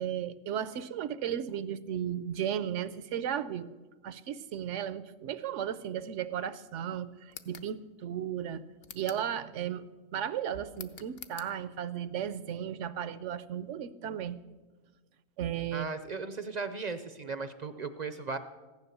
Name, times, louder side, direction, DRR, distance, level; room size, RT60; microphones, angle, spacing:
voice 1, 0.0-3.7 4.0-8.7 8.9-9.9 10.1-14.4 15.4-15.9, right 9 dB, 70° right, 15 dB, 0.9 m, -35 dB
sound 1, 7.3-7.7 8.8-9.3 10.7-11.5, left 7 dB, 55° left, 0.9 m, -47 dB
voice 2, 15.7-18.4, right 4 dB, 45° right, 10 dB, 0.6 m, -37 dB
15.5 x 10.5 x 6.7 m, 1.3 s
omnidirectional pair, 1.4 m